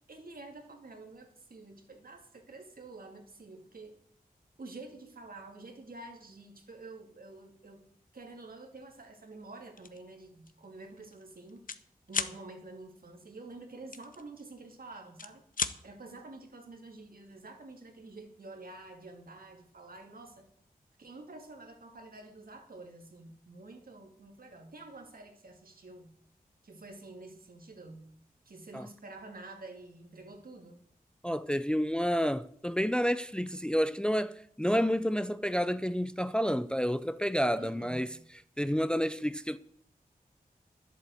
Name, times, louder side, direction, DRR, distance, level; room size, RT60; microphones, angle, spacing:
voice 1, 0.1-4.0 4.6-7.8 8.1-11.6 12.1-15.4 15.8-20.5 21.0-26.1 26.6-28.1 28.5-30.8 37.6-38.2, right 2 dB, 70° right, 2.5 m, -48 dB
sound 1, 9.8-10.0 10.5-10.6 10.9-11.8 12.1-12.4 13.9-14.7 15.1-15.8, left 5 dB, 60° left, 0.8 m, -35 dB
voice 2, 31.2-38.1 38.6-39.6, equal, 5° left, 0.5 m, -29 dB
11.0 x 8.3 x 7.9 m
cardioid pair, 55°, 16 cm